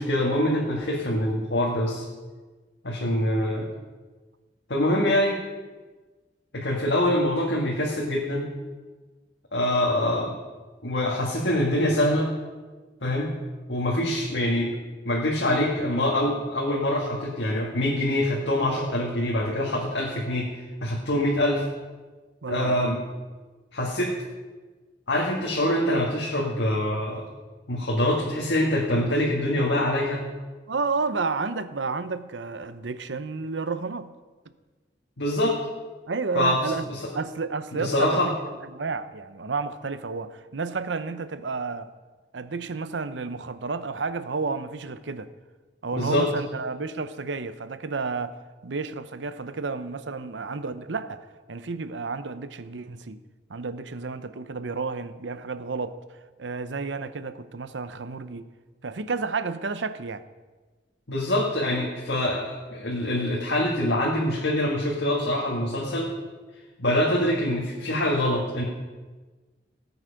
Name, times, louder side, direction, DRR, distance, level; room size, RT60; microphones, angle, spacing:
voice 1, 0.0-2.1 2.8-3.7 4.7-5.4 6.5-8.5 9.5-10.4 10.8-12.3 13.0-13.3 13.7-14.7 15.1-20.5 20.8-21.7 22.5-23.0 23.7-24.2 25.1-27.3 27.7-30.2 35.2-35.6 36.3-37.1 37.7-38.3 45.9-46.3 61.1-66.1 66.8-68.6, left 1 dB, 75° left, 1.9 m, -24 dB
voice 2, 22.4-23.0 30.7-34.1 36.1-36.8 37.1-38.2 38.6-41.9 42.3-45.3 45.8-48.4 48.6-53.2 53.5-56.0 56.4-58.5 58.8-60.2, right 4 dB, 85° right, 0.7 m, -31 dB
18.0 x 8.1 x 5.2 m
head